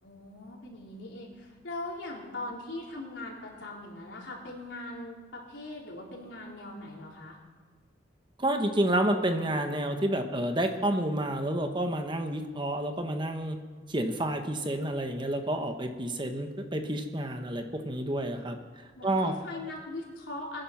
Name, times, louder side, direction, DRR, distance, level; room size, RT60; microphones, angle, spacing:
voice 1, 0.0-7.4 16.2-16.4 18.9-20.6, left 2 dB, 80° left, -2 dB, 4.0 m, -41 dB
voice 2, 8.4-13.6 13.9-18.6 19.0-19.3, right 1 dB, 25° right, 6 dB, 1.1 m, -29 dB
22.0 x 10.5 x 6.0 m, 1.4 s
head